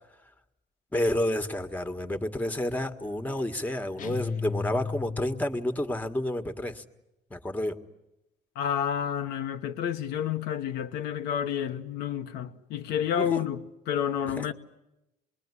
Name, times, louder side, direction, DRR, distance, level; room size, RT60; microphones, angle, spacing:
voice 1, 0.9-6.8 7.3-7.8 13.2-13.4 14.3-14.5, left 1 dB, 10° left, 1.6 m, -30 dB
sound 1, 4.0-5.7, left 5 dB, 50° left, 1.0 m, -34 dB
voice 2, 8.5-14.5, left 9 dB, 85° left, 1.2 m, -30 dB
26.5 x 21.0 x 9.9 m
cardioid pair, 110°, 17 cm